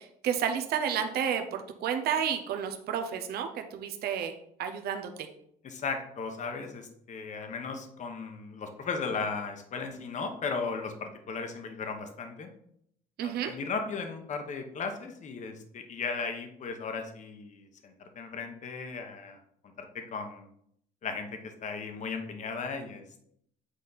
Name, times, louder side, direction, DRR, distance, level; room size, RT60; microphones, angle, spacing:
voice 1, 0.0-4.3 4.6-5.3 13.2-13.5, right 8 dB, 65° right, 6 dB, 0.8 m, -31 dB
voice 2, 5.6-12.5 13.2-19.4 19.8-20.5 21.0-21.3 21.6-23.0, left 4 dB, 45° left, 5 dB, 1.2 m, -36 dB
8.2 x 4.1 x 4.1 m, 0.71 s
cardioid pair, 110°, 17 cm